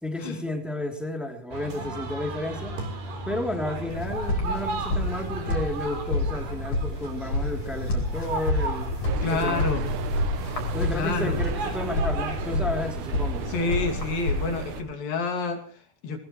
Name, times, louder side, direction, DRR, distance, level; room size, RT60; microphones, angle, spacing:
voice 1, 0.0-2.8 3.2-8.9 9.2-9.8 10.1-10.3 10.7-13.4, left 1 dB, ahead, 2 dB, 2.3 m, -32 dB
sound 1, 1.5-13.6, right 2 dB, 85° right, 6.1 m, -36 dB
sound 2, 3.9-14.8, left 1 dB, 50° left, 5.6 m, -29 dB
sound 3, 9.0-14.8, right 10 dB, 70° right, 2.1 m, -37 dB
voice 2, 9.2-9.9 10.5-10.6 10.9-11.4 13.5-16.2, left 4 dB, 65° left, 5 dB, 4.2 m, -29 dB
21.5 x 20.5 x 3.2 m, 0.40 s
omnidirectional pair, 4.5 m